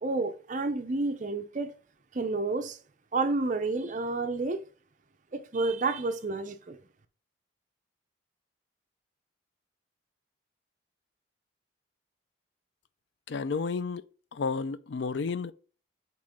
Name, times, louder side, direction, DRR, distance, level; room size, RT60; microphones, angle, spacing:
voice 1, 0.0-1.8 2.1-2.8 3.1-4.7 5.3-6.8, right 3 dB, 40° right, 0.6 m, -30 dB
voice 2, 13.3-14.0 14.3-15.5, left 4 dB, 65° left, 0.4 m, -31 dB
8.5 x 3.0 x 3.7 m
head